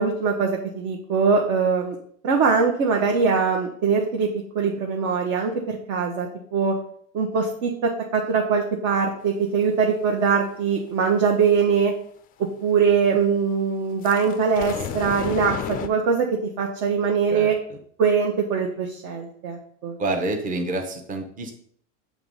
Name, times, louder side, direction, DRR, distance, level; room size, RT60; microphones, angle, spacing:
voice 1, 0.0-2.0 2.2-6.8 7.1-11.9 12.4-17.6 18.0-20.0, right 5 dB, 50° right, 1 dB, 1.0 m, -22 dB
sound 1, 14.0-15.9, left 8 dB, 25° left, 0.4 m, -31 dB
voice 2, 20.0-21.5, right 2 dB, 20° right, 4 dB, 0.8 m, -27 dB
6.6 x 3.1 x 5.4 m, 0.63 s
supercardioid pair, 125°, 39 cm